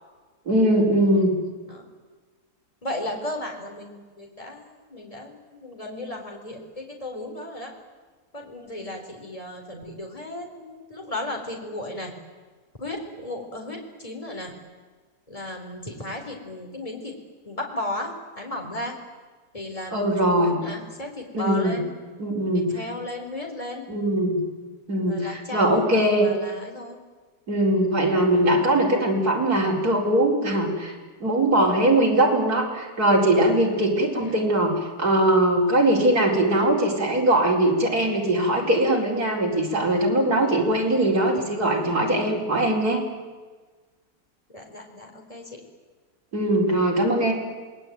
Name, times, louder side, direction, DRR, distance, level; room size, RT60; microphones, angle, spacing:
voice 1, 0.5-1.3 19.9-20.6 21.3-21.8 22.2-22.7 23.9-24.4 24.9-26.3 27.5-30.9 31.2-34.7 35.0-43.0 46.3-47.3, right 1 dB, 60° right, -1 dB, 5.0 m, -21 dB
voice 2, 2.8-4.6 4.9-7.7 8.3-12.1 12.8-14.5 15.3-17.1 17.5-19.0 19.5-21.9 22.7-23.8 25.1-27.0 34.2-34.3 40.8-40.9 44.5-45.6, left 1 dB, 20° left, 2 dB, 4.1 m, -35 dB
27.5 x 20.0 x 9.3 m, 1.4 s
omnidirectional pair, 1.8 m